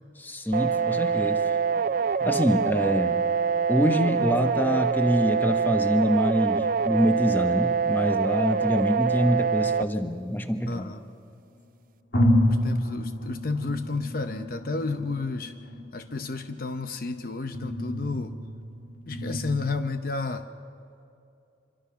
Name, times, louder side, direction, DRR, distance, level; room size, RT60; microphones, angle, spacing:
voice 1, 0.2-1.4 2.2-3.2 3.7-10.9, equal, 10° left, 6 dB, 1.2 m, -25 dB
sound 1, 0.5-9.8, right 6 dB, 50° right, 0.4 m, -25 dB
sound 2, 9.7-11.1 11.6-11.7 12.1-19.7, left 1 dB, 75° left, 3.2 m, -30 dB
voice 2, 10.7-11.0 12.5-15.5 15.9-18.3 19.1-20.4, left 3 dB, 55° left, 8 dB, 0.8 m, -31 dB
26.5 x 23.0 x 5.9 m, 2.7 s
head